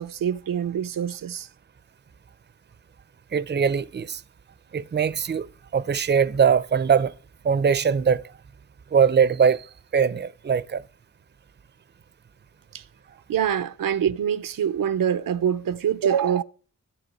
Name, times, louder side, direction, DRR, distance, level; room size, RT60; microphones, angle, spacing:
voice 1, 0.0-1.5 13.3-16.4, right 8 dB, 90° right, 0.6 m, -25 dB
voice 2, 3.3-4.2 4.7-7.1 7.4-8.2 8.9-9.7 9.9-10.8, right 7 dB, 35° right, 0.5 m, -21 dB
11.0 x 7.0 x 7.6 m
cardioid pair, 60°, 33 cm